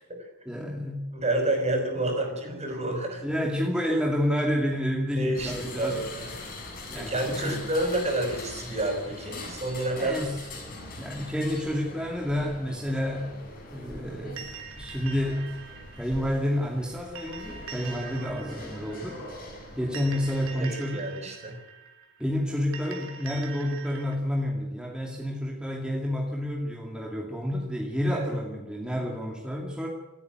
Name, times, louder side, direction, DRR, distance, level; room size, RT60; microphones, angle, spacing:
voice 1, 0.5-1.1 3.2-6.0 6.9-7.6 10.0-10.7 11.0-13.3 13.7-14.5 14.8-15.5 16.0-19.2 19.8-21.1 22.2-29.9, equal, 5° right, -1 dB, 2.6 m, -29 dB
voice 2, 1.1-3.3 5.1-6.3 6.6-10.2 20.5-21.6 28.1-28.3, right 1 dB, 30° right, 4 dB, 5.7 m, -29 dB
sound 1, 5.3-20.5, left 2 dB, 45° left, 7.4 m, -42 dB
sound 2, 14.4-24.2, right 6 dB, 65° right, 3.2 m, -44 dB
28.0 x 9.8 x 9.5 m, 1.0 s
head